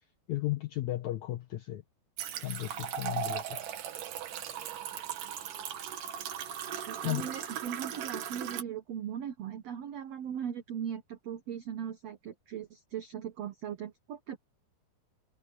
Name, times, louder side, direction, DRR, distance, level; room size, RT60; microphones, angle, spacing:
voice 1, 0.3-1.8 2.4-3.6 7.0-7.3, left 16 dB, 80° left, 1.7 m, -34 dB
sound 1, 2.2-8.6, right 9 dB, 60° right, 2.9 m, -38 dB
voice 2, 6.8-14.4, right 9 dB, 90° right, 1.4 m, -39 dB
omnidirectional pair, 4.6 m